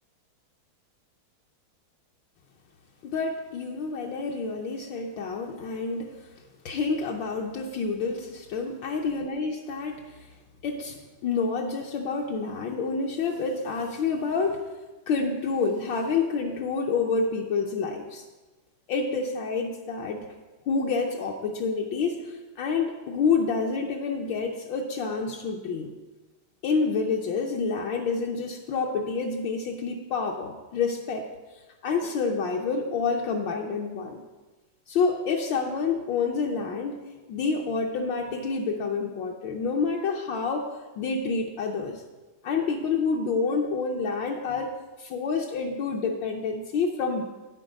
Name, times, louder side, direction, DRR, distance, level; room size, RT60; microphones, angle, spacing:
voice 1, 3.0-6.1 6.6-10.3 10.6-14.7 15.1-18.2 18.9-20.2 20.7-25.9 26.6-31.3 31.8-34.2 34.9-37.0 37.3-40.7 41.0-42.0 42.4-47.2, left 4 dB, 70° left, 1 dB, 1.4 m, -28 dB
9.4 x 7.6 x 4.9 m, 1.2 s
omnidirectional pair, 2.3 m